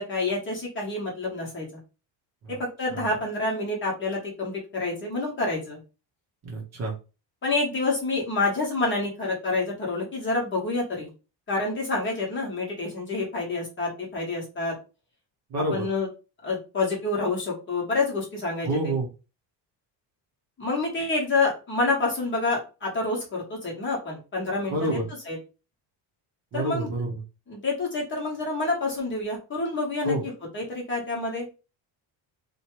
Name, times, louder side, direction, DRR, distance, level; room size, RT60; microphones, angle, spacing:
voice 1, 0.0-1.7 2.5-5.8 7.4-11.1 11.5-14.7 15.7-16.1 16.4-18.9 20.6-24.9 25.3-25.4 26.5-26.9 27.5-31.5, left 3 dB, 25° left, -3 dB, 0.9 m, -28 dB
voice 2, 6.4-6.9 15.5-15.9 18.6-19.1 24.7-25.1 26.5-27.2 30.0-30.2, right 1 dB, 35° right, -1 dB, 0.7 m, -28 dB
2.7 x 2.2 x 3.0 m, 0.31 s
cardioid pair, 165°, 46 cm